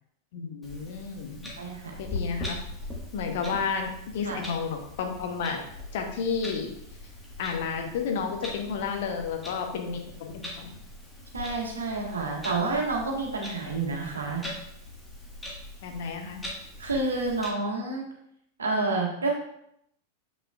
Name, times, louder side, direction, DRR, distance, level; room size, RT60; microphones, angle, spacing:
voice 1, 0.3-1.4 2.0-2.6 3.1-5.6 5.9-6.7 7.4-10.7 15.8-16.4, left 5 dB, 55° left, 4 dB, 0.9 m, -31 dB
Clock, 0.6-17.5, left 1 dB, 5° left, 1.5 m, -41 dB
voice 2, 1.6-2.0 4.2-4.4 11.3-14.4 16.8-18.0 18.6-19.3, right 3 dB, 70° right, -1 dB, 1.5 m, -29 dB
7.4 x 5.9 x 2.4 m, 0.74 s
figure-of-eight pair, 90°, 0 cm